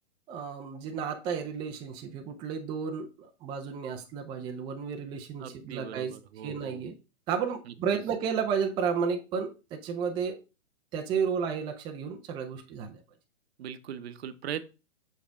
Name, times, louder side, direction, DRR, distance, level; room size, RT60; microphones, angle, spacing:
voice 1, 0.3-6.1 6.4-7.0 7.3-10.4 10.9-13.0, right 6 dB, 15° right, 3 dB, 0.5 m, -32 dB
voice 2, 5.4-6.9 13.6-14.6, right 9 dB, 60° right, 12 dB, 0.8 m, -40 dB
6.5 x 4.9 x 3.4 m, 0.30 s
hypercardioid pair, 130°, 36 cm